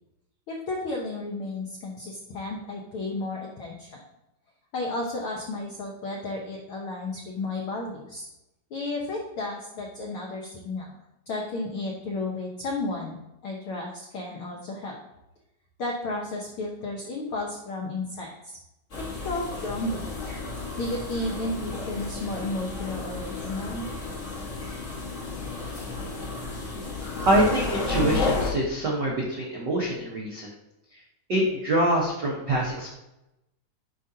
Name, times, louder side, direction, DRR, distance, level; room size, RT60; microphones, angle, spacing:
voice 1, 0.5-4.0 4.7-8.3 8.7-11.0 11.3-13.2 13.4-15.0 15.8-18.6 18.9-20.0 20.8-23.8, left 2 dB, 75° left, -1 dB, 1.2 m, -33 dB
sound 1, 18.9-28.5, left 3 dB, 45° left, 1.0 m, -32 dB
voice 2, 27.2-30.5 31.3-32.9, right 1 dB, 70° right, -3 dB, 1.0 m, -25 dB
9.4 x 5.1 x 2.8 m, 0.90 s
omnidirectional pair, 3.7 m